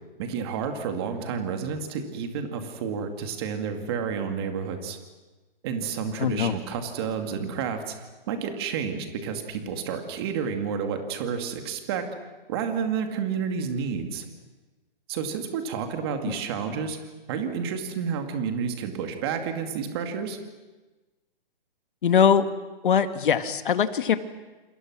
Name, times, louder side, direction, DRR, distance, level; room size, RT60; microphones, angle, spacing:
voice 1, 0.2-5.0 5.6-8.0 8.3-12.1 12.5-14.3 15.1-17.0 17.3-20.4, right 6 dB, 25° right, 5 dB, 2.3 m, -30 dB
voice 2, 6.2-6.5 16.3-16.4 22.0-22.5 22.8-24.2, left 7 dB, 60° left, 9 dB, 1.9 m, -21 dB
28.0 x 27.0 x 6.2 m, 1.2 s
hypercardioid pair, 170°, 29 cm